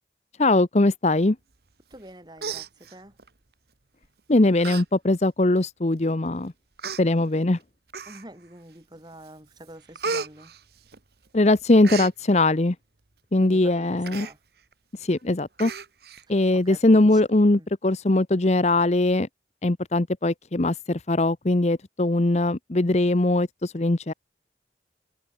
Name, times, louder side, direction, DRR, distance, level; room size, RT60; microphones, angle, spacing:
voice 1, 0.4-1.4 4.3-6.5 7.0-7.6 11.3-12.7 13.3-14.3 15.0-15.7 16.3-19.3 19.6-24.1, left 2 dB, 40° left, 0.8 m, -21 dB
voice 2, 1.9-3.2 8.0-10.5 13.4-14.4 16.3-17.2 17.5-17.7, right 1 dB, 25° right, 6.5 m, -46 dB
Human voice, 1.9-2.1 2.4-3.3 4.0-4.2 4.6-4.8 5.2-5.3 6.1-6.2 6.8-7.0 7.9-8.5 8.9-9.3 9.6-11.3 11.6-12.1 14.0-14.3 14.7-14.8 15.1-15.2 15.6-16.2 16.6-16.7, right 5 dB, 60° right, 1.4 m, -34 dB
head